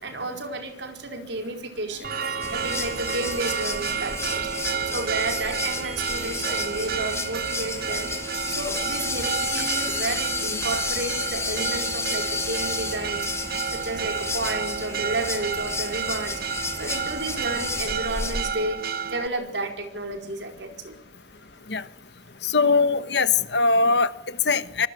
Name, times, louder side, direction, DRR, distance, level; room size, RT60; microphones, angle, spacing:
voice 1, 0.0-2.1 2.5-4.6 4.8-13.3 13.7-16.4 16.7-18.8 19.1-21.0, right 2 dB, 70° right, 4.8 m, -32 dB
sound 1, 1.9-10.0, right 1 dB, 35° right, 4.0 m, -42 dB
Church bell, 2.0-19.3, right 7 dB, 55° right, 0.9 m, -31 dB
sound 2, 2.4-18.5, left 4 dB, 15° left, 1.9 m, -32 dB
voice 2, 22.4-24.9, left 4 dB, 65° left, 1.3 m, -21 dB
26.0 x 19.5 x 7.9 m
head